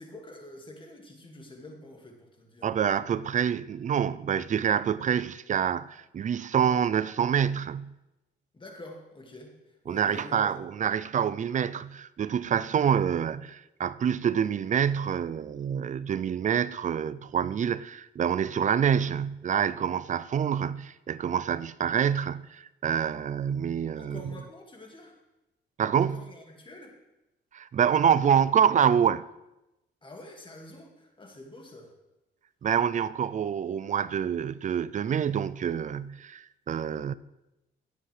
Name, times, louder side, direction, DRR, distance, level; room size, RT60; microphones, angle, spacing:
voice 1, 0.0-2.7 8.5-10.5 24.0-25.2 26.0-26.9 30.0-31.9, left 2 dB, 25° left, 2.1 m, -47 dB
voice 2, 2.6-7.9 9.9-24.2 25.8-26.2 27.5-29.2 32.6-37.1, right 8 dB, 40° right, 0.4 m, -26 dB
16.5 x 7.7 x 3.3 m
cardioid pair, 90°, 20 cm